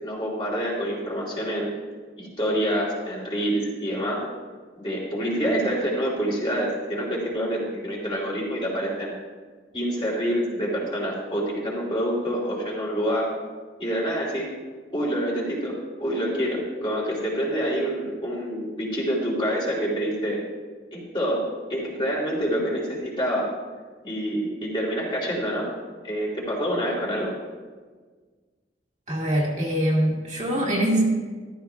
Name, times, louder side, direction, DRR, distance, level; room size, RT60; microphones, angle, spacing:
voice 1, 0.0-1.7 2.2-4.2 4.8-9.1 9.7-13.3 13.8-14.5 14.9-15.7 16.0-20.4 20.9-23.5 24.0-25.7 26.0-27.3, equal, 25° left, -4 dB, 2.9 m, -27 dB
voice 2, 29.1-31.0, right 1 dB, 40° right, -4 dB, 1.9 m, -23 dB
13.5 x 13.5 x 2.3 m, 1.4 s
head